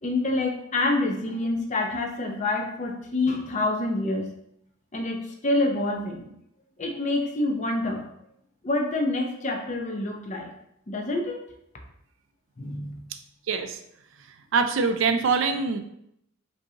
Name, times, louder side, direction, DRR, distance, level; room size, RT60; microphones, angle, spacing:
voice 1, 0.0-4.3 4.9-6.3 6.8-8.1 8.6-10.5 10.9-11.4 12.6-13.0, left 2 dB, 35° left, 2 dB, 0.6 m, -27 dB
voice 2, 13.5-13.8 14.5-15.8, right 5 dB, 70° right, 7 dB, 0.4 m, -23 dB
5.2 x 2.8 x 2.8 m, 0.76 s
head